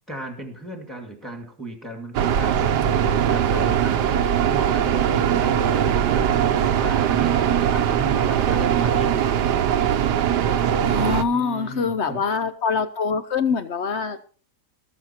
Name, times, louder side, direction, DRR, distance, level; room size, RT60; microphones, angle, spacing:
voice 1, 0.1-4.0 4.5-9.4 11.3-12.2, right 1 dB, ahead, 4 dB, 2.1 m, -36 dB
sound 1, 2.1-11.2, right 9 dB, 70° right, 1.4 m, -21 dB
voice 2, 10.6-14.2, left 5 dB, 50° left, 11 dB, 0.9 m, -24 dB
18.5 x 7.2 x 4.4 m, 0.41 s
omnidirectional pair, 1.9 m